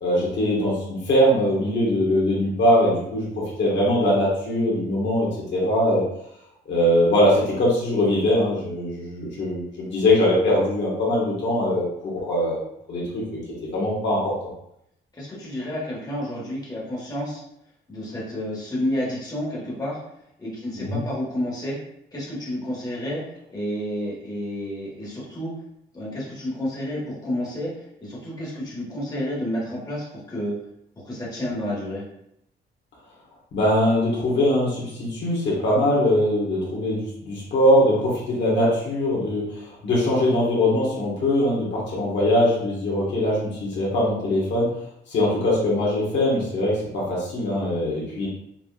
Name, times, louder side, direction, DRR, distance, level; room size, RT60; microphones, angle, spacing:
voice 1, 0.0-6.0 6.6-12.6 12.9-13.2 13.7-14.2 20.7-21.0 33.5-44.7 45.1-48.3, left 1 dB, 70° left, -6 dB, 1.6 m, -22 dB
voice 2, 15.2-17.4 17.9-20.0 20.4-21.8 22.1-23.2 23.5-25.5 25.9-27.7 28.0-30.6 31.0-32.0, left 1 dB, 20° left, -6 dB, 1.5 m, -30 dB
5.8 x 2.8 x 2.4 m, 0.78 s
cardioid pair, 145°, 20 cm